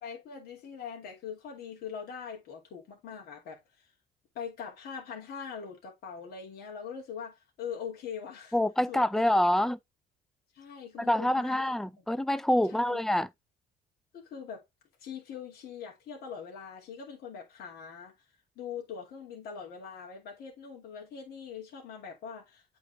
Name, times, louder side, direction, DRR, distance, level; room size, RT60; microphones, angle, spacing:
voice 1, 0.0-3.9 4.3-8.6 8.9-9.2 9.6-9.7 10.5-11.6 12.7-13.0 14.1-14.6 15.0-18.1 18.6-22.8, left 7 dB, 65° left, 2.3 m, -42 dB
voice 2, 8.5-9.8 11.1-13.3, left 1 dB, ahead, 0.4 m, -26 dB
8.1 x 3.7 x 3.3 m
cardioid pair, 110°, 17 cm